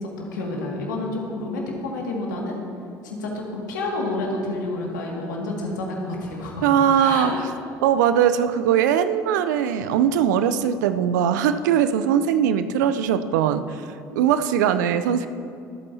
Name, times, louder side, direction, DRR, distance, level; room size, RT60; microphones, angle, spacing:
voice 1, 0.0-2.6 3.0-7.3, left 2 dB, 85° left, -1 dB, 2.2 m, -29 dB
voice 2, 6.6-7.3 7.8-13.8 14.1-15.3, right 9 dB, 80° right, 11 dB, 0.6 m, -20 dB
24.0 x 8.8 x 2.8 m, 2.5 s
hypercardioid pair, 60°, 10 cm